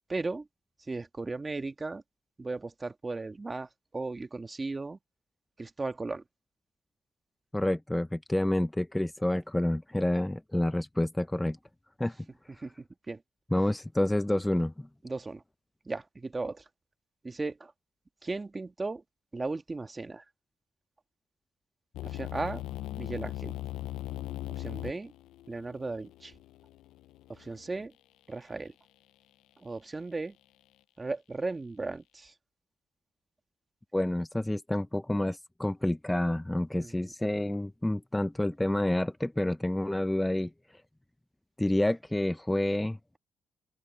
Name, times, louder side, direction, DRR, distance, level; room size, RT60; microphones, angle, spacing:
voice 1, 0.1-0.5 0.9-2.0 2.4-3.7 3.9-5.0 5.6-6.2 12.6-12.7 13.1-13.2 15.0-15.4 15.8-16.6 17.2-17.7 18.2-19.0 19.3-20.2 22.0-22.6 23.0-23.5 24.5-25.1 25.5-26.3 27.3-27.9 28.3-28.7 29.6-30.3 31.0-32.3 36.7-37.1, right 3 dB, 25° right, 1.7 m, -36 dB
voice 2, 7.5-11.6 12.0-12.1 13.5-14.9 33.9-40.5 41.6-43.0, left 1 dB, 10° left, 0.7 m, -28 dB
sound 1, 21.9-27.9, left 16 dB, 85° left, 0.4 m, -39 dB
open air
cardioid pair, 90°, 0 cm